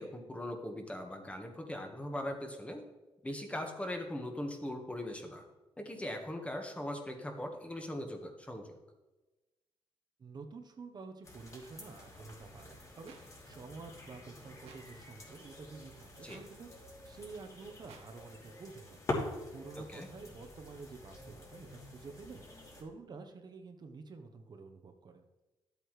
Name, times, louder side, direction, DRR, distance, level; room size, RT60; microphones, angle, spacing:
voice 1, 0.0-2.8 3.2-5.4 5.8-8.8 16.2-16.4 19.8-20.1, left 1 dB, 10° left, 4 dB, 1.5 m, -40 dB
voice 2, 10.2-19.0 19.5-25.2, right 4 dB, 45° right, 6 dB, 1.0 m, -50 dB
sound 1, 11.2-22.8, left 2 dB, 30° left, 3.0 m, -45 dB
sound 2, 13.1-13.2 14.6-14.8 16.3-16.4 17.9-18.0, right 6 dB, 90° right, 1.6 m, -53 dB
12.0 x 8.0 x 3.2 m, 1.1 s
cardioid pair, 105°, 10 cm